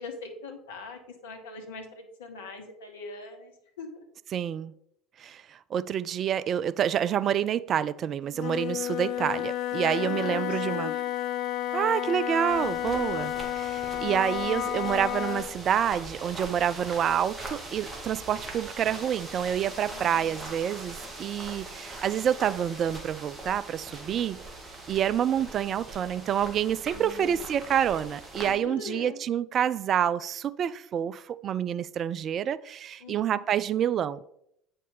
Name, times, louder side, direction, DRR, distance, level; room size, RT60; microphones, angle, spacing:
voice 1, 0.0-3.5 3.8-4.0 9.8-11.0 19.9-20.5 26.9-27.4 28.4-29.2 33.0-33.5, left 4 dB, 70° left, 1.3 m, -41 dB
voice 2, 4.3-4.7 5.2-10.9 11.7-24.4 24.9-34.2, right 9 dB, 40° right, 0.3 m, -28 dB
Wind instrument woodwind instrument, 8.3-15.5, left 12 dB, 50° left, 0.5 m, -31 dB
footsteps rocky road, 12.5-28.5, right 2 dB, 20° right, 2.0 m, -42 dB
8.5 x 5.4 x 3.9 m
figure-of-eight pair, 65°, 0 cm